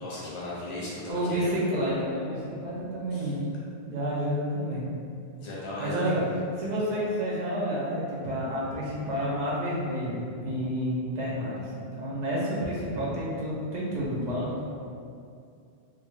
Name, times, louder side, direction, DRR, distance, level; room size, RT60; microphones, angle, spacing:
voice 1, 0.0-1.5 3.1-3.3 5.4-6.4 6.9-7.1, left 1 dB, 45° left, -7 dB, 0.8 m, -37 dB
voice 2, 1.1-3.4 3.9-4.8 5.8-6.2 6.6-14.8, equal, 50° right, -6 dB, 0.6 m, -30 dB
2.5 x 2.2 x 3.0 m, 2.4 s
omnidirectional pair, 1.1 m